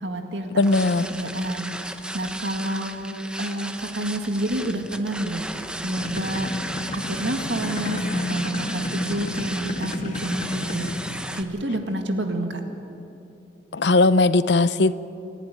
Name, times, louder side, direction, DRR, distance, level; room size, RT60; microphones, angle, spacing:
voice 1, 0.0-1.7 2.1-5.5 5.8-6.5 6.9-11.0 11.3-12.6, right 1 dB, 80° right, 5 dB, 2.0 m, -29 dB
voice 2, 0.5-1.0 13.7-15.0, left 3 dB, 70° left, 15 dB, 0.7 m, -18 dB
sound 1, 0.6-11.4, right 1 dB, 5° right, 0.8 m, -35 dB
sound 2, 5.9-11.6, left 2 dB, 40° left, 1.4 m, -31 dB
28.5 x 11.5 x 9.7 m, 2.8 s
head